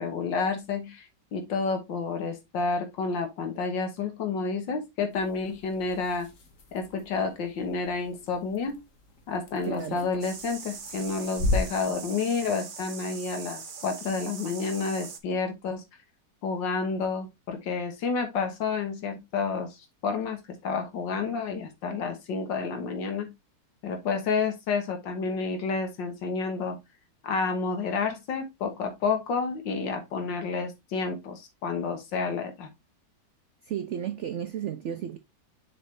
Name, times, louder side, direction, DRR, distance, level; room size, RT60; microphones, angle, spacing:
voice 1, 0.0-6.3 6.7-8.8 9.3-15.8 16.4-23.3 23.8-26.8 27.2-32.7, left 4 dB, 85° left, 2.0 m, -30 dB
sound 1, 5.1-12.1, left 2 dB, 50° left, 1.5 m, -36 dB
voice 2, 9.6-10.1 33.6-35.2, right 9 dB, 90° right, 0.6 m, -33 dB
sound 2, 10.2-15.2, right 5 dB, 40° right, 0.7 m, -41 dB
7.0 x 4.7 x 3.2 m
omnidirectional pair, 1.9 m